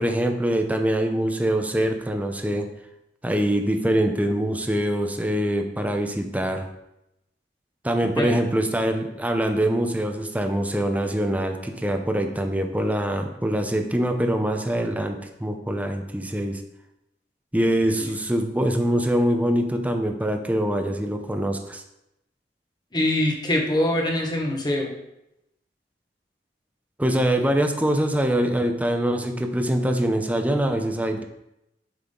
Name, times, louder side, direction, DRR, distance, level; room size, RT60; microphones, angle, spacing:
voice 1, 0.0-2.7 3.2-6.7 7.8-16.6 17.5-21.8 27.0-31.2, right 1 dB, 10° right, 5 dB, 0.7 m, -24 dB
voice 2, 22.9-24.9, left 1 dB, 25° left, 0 dB, 1.3 m, -23 dB
8.0 x 5.7 x 3.9 m, 0.85 s
head